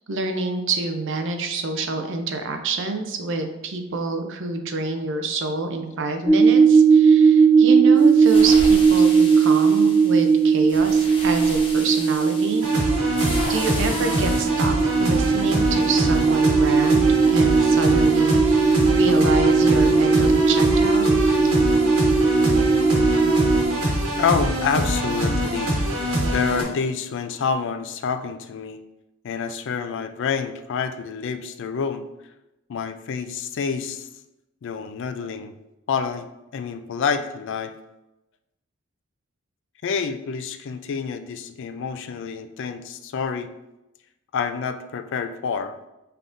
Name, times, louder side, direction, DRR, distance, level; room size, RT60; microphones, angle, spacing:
voice 1, 0.1-12.6 13.5-21.0, right 3 dB, 60° right, 5 dB, 0.6 m, -27 dB
sound 1, 6.3-23.6, right 5 dB, 5° left, 0.7 m, -18 dB
sound 2, 8.0-14.4, left 1 dB, 25° left, 1.0 m, -35 dB
sound 3, 12.6-26.6, equal, 90° right, 1.5 m, -24 dB
voice 2, 24.2-25.8 26.3-28.8 29.2-32.0 32.7-34.1 34.6-35.5 35.9-36.3 36.5-37.7 39.8-43.5 44.3-45.7, left 6 dB, 55° left, 9 dB, 0.3 m, -27 dB
5.6 x 3.6 x 2.5 m, 0.93 s
head